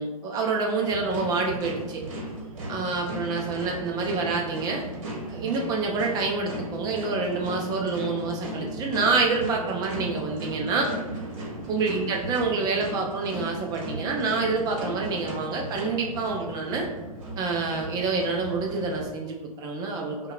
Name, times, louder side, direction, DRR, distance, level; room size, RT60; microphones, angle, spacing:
voice 1, 0.0-2.0 2.7-4.8 5.3-10.9 11.7-16.9 17.4-20.3, right 4 dB, 20° right, 0 dB, 0.4 m, -27 dB
sound 1, 0.8-19.0, right 1 dB, 60° right, 0.8 m, -36 dB
4.4 x 2.1 x 2.3 m, 1.1 s
figure-of-eight pair, 110°, 19 cm